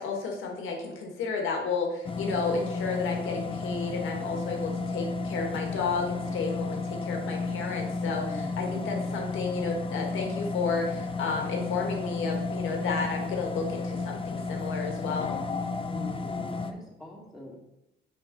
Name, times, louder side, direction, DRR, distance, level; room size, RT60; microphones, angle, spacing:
voice 1, 0.0-15.4, left 4 dB, 80° left, 1 dB, 1.7 m, -32 dB
sound 1, 2.0-16.7, left 3 dB, 25° left, 0.7 m, -33 dB
voice 2, 8.3-9.0 15.9-17.6, right 1 dB, ahead, -3 dB, 2.3 m, -44 dB
5.7 x 4.6 x 5.2 m, 0.88 s
cardioid pair, 90°, 20 cm